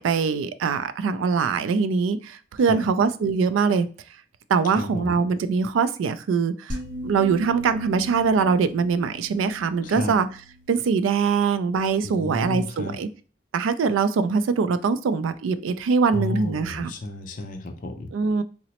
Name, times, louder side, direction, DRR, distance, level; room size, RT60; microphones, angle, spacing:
voice 1, 0.0-3.9 4.5-10.3 10.7-13.1 13.5-16.9 18.1-18.4, right 5 dB, 90° right, 13 dB, 0.3 m, -23 dB
voice 2, 4.8-5.1 9.8-10.1 12.0-13.0 16.1-18.1, left 2 dB, 40° left, 3 dB, 0.4 m, -32 dB
sound 1, 6.7-11.9, equal, 40° right, 0.6 m, -38 dB
3.9 x 2.0 x 2.8 m, 0.38 s
head